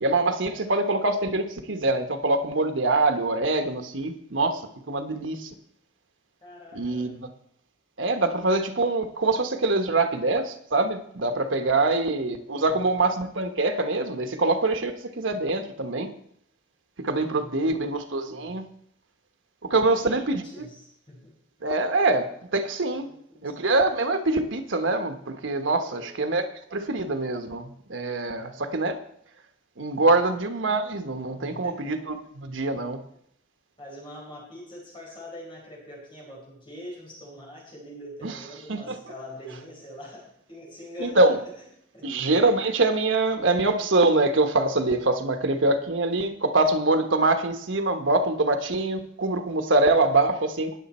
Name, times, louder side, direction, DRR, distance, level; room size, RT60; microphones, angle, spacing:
voice 1, 0.0-4.6 4.9-5.5 6.7-7.3 8.0-16.1 17.0-18.7 19.6-20.4 21.6-23.1 23.4-29.0 29.8-33.0 38.2-38.3 38.7-39.0 41.0-41.4 42.0-50.8, right 2 dB, 85° right, 7 dB, 1.2 m, -24 dB
voice 2, 6.4-7.1 11.5-11.9 12.6-13.0 17.3-18.6 19.7-21.3 23.0-23.7 25.7-26.1 28.3-28.6 30.1-30.3 31.4-31.9 33.8-41.5 41.9-42.1, left 1 dB, 25° left, -3 dB, 4.5 m, -44 dB
19.0 x 7.0 x 4.3 m, 0.68 s
head